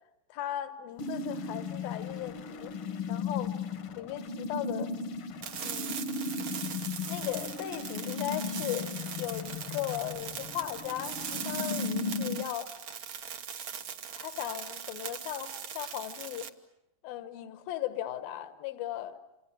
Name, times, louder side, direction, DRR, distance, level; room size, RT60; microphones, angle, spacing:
voice 1, 0.3-2.7 3.1-3.6 3.9-4.9 5.6-6.1 7.1-8.9 9.2-12.7 14.1-16.5 17.0-19.2, left 13 dB, 85° left, 2.9 m, -37 dB
sound 1, 1.0-12.4, left 4 dB, 60° left, 1.5 m, -36 dB
sound 2, 5.4-16.5, right 8 dB, 60° right, 1.6 m, -40 dB
28.0 x 28.0 x 7.4 m
omnidirectional pair, 4.1 m